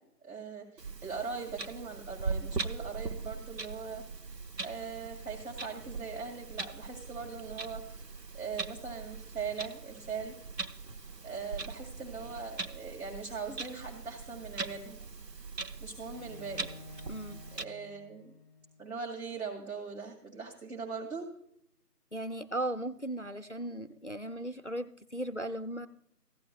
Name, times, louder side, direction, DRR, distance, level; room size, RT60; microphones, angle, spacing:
voice 1, 0.2-4.0 4.6-8.0 8.3-10.3 11.2-15.0 15.8-16.7 17.5-18.3 18.8-21.3, right 5 dB, 60° right, -2 dB, 2.4 m, -40 dB
Clock, 0.8-17.6, right 4 dB, 85° right, 1.1 m, -41 dB
Bowed string instrument, 16.1-19.1, left 4 dB, 30° right, 1.5 m, -52 dB
voice 2, 17.1-17.4 22.1-25.9, right 1 dB, 50° left, 11 dB, 0.5 m, -37 dB
15.5 x 11.5 x 2.3 m, 0.72 s
figure-of-eight pair, 175°, 49 cm